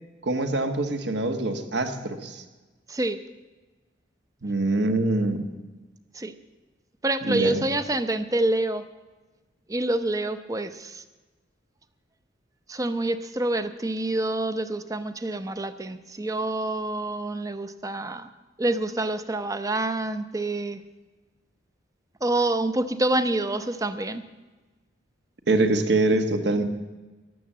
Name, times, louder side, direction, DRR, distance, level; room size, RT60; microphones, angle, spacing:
voice 1, 0.2-2.4 4.4-5.5 7.2-7.6 25.5-26.6, right 2 dB, 65° right, 7 dB, 1.4 m, -24 dB
voice 2, 2.9-3.2 6.1-6.3 7.0-8.8 9.7-11.0 12.7-18.3 18.6-20.8 22.2-24.2, right 2 dB, 20° right, 11 dB, 0.7 m, -27 dB
14.0 x 11.5 x 7.4 m, 1.2 s
head